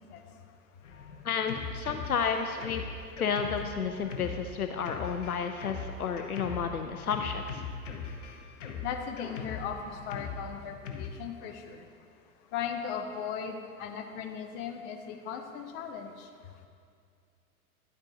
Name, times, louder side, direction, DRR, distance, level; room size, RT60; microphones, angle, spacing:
Drum kit, 0.8-11.1, left 5 dB, 55° left, 1.0 m, -41 dB
voice 1, 1.2-2.9 3.2-7.6, left 6 dB, 80° left, 6 dB, 0.6 m, -31 dB
voice 2, 8.8-11.8 12.5-16.3, left 7 dB, 25° left, 5 dB, 0.6 m, -37 dB
10.5 x 8.6 x 2.7 m, 2.2 s
figure-of-eight pair, 100°, 44 cm